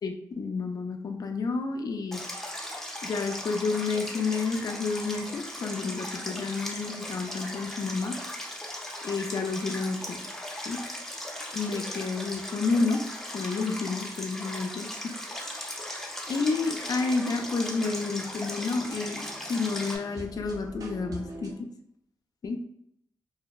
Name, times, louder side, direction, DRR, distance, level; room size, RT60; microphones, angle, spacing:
voice 1, 0.0-2.2 3.0-8.2 9.0-10.2 10.7-10.8 11.5-13.0 13.3-15.1 16.3-21.7 22.4-22.6, left 4 dB, 55° left, 4 dB, 0.4 m, -30 dB
Stream, 2.1-20.0, left 1 dB, 5° left, 0.6 m, -38 dB
sound 1, 16.3-21.5, right 1 dB, 50° right, 0.5 m, -45 dB
2.6 x 2.0 x 2.3 m, 0.74 s
cardioid pair, 70°, 8 cm